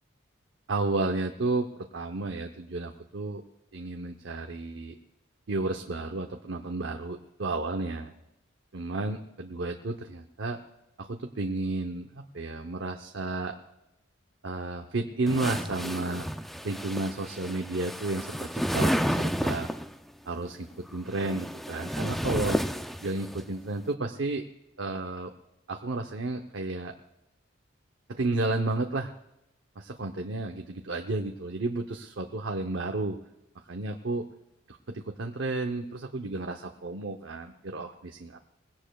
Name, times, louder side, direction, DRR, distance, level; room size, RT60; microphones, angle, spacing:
voice 1, 0.7-3.4 3.7-5.0 5.5-8.1 8.7-10.6 11.0-13.6 14.4-16.2 16.6-19.7 20.3-22.6 23.0-24.4 24.8-25.3 25.7-26.9 28.1-29.1 29.8-33.2 33.7-34.2 34.7-38.4, right 2 dB, 65° right, 4 dB, 0.8 m, -32 dB
sound 1, 15.3-19.9 20.9-23.4, equal, ahead, 0.4 m, -31 dB
21.0 x 16.5 x 2.3 m, 0.88 s
head